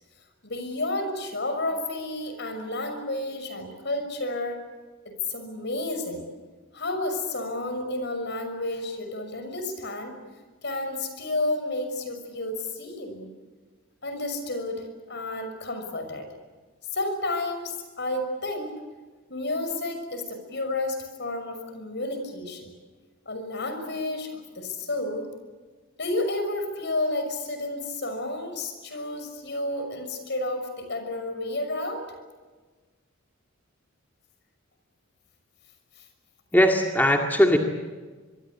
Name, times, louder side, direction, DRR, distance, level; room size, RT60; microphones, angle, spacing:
voice 1, 0.4-4.6 5.1-6.3 6.7-10.1 10.6-13.3 14.0-16.3 16.9-18.7 19.3-22.7 23.3-25.3 26.0-32.1 36.0-36.1, left 2 dB, 60° left, 7 dB, 6.1 m, -31 dB
voice 2, 36.5-37.6, equal, 10° left, 2 dB, 2.0 m, -19 dB
25.5 x 22.5 x 8.5 m, 1.4 s
head